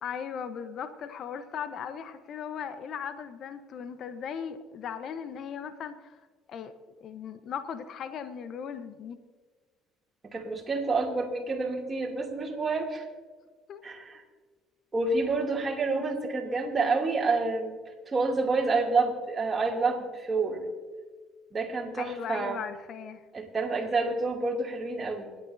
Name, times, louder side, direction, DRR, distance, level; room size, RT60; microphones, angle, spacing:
voice 1, 0.0-6.2 6.5-6.7 7.0-9.2 13.7-13.8 15.9-16.2 21.9-23.2, left 7 dB, 55° left, 11 dB, 1.0 m, -38 dB
voice 2, 10.3-13.1 13.8-14.2 14.9-17.8 18.1-20.7 21.5-22.6 23.3-25.4, right 3 dB, 30° right, -2 dB, 2.8 m, -28 dB
28.5 x 9.7 x 2.8 m, 1.5 s
hypercardioid pair, 55°, 0 cm